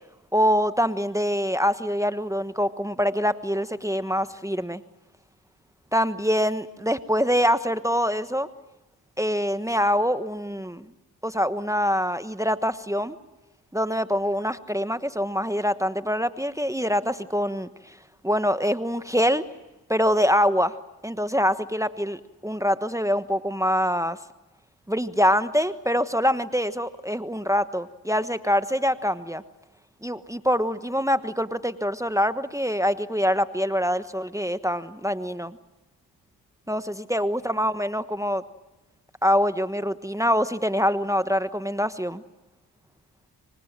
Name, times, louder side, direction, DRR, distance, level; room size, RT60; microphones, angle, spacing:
voice 1, 0.3-4.8 5.9-8.5 9.2-10.9 11.2-13.2 13.7-18.0 18.2-19.4 19.9-20.7 21.0-24.2 24.9-29.4 30.0-35.6 36.7-36.8 37.1-38.4 39.2-42.2, equal, 5° right, 12 dB, 1.2 m, -24 dB
27.5 x 24.0 x 7.5 m, 1.1 s
supercardioid pair, 45°, 41 cm